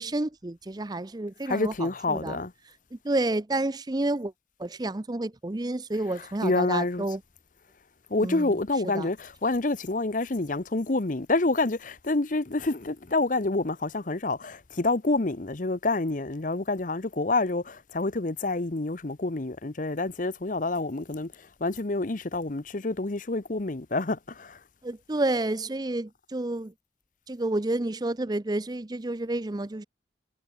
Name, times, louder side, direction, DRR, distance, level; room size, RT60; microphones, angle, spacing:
voice 1, 0.0-2.4 2.9-4.3 4.6-7.2 8.2-8.6 8.8-9.1 24.8-26.7 27.3-29.8, right 2 dB, 20° right, 0.5 m, -30 dB
voice 2, 1.5-2.5 6.4-7.0 8.1-21.3 21.6-24.6, left 2 dB, 45° left, 0.9 m, -28 dB
head